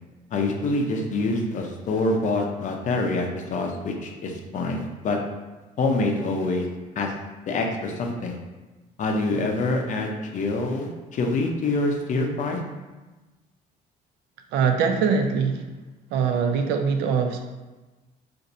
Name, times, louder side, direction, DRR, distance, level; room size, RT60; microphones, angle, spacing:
voice 1, 0.3-5.2 5.8-6.7 7.0-7.1 7.5-8.4 9.0-12.6, left 2 dB, 50° left, 2 dB, 0.5 m, -26 dB
voice 2, 14.5-15.6 16.1-17.4, right 6 dB, 85° right, 5 dB, 0.4 m, -22 dB
2.5 x 2.5 x 4.1 m, 1.2 s
cardioid pair, 110°, 17 cm